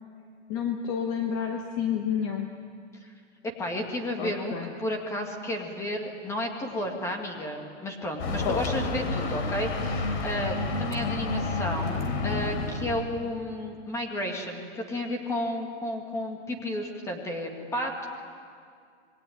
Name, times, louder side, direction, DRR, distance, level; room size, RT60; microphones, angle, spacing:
voice 1, 0.5-2.5 4.2-4.7 8.4-8.6, left 7 dB, 25° left, 4 dB, 1.2 m, -29 dB
voice 2, 3.6-18.1, left 1 dB, 10° left, 3 dB, 1.9 m, -32 dB
sound 1, 8.2-13.2, left 3 dB, 65° left, 3.4 m, -30 dB
27.0 x 21.5 x 9.3 m, 2.2 s
supercardioid pair, 180°, 35 cm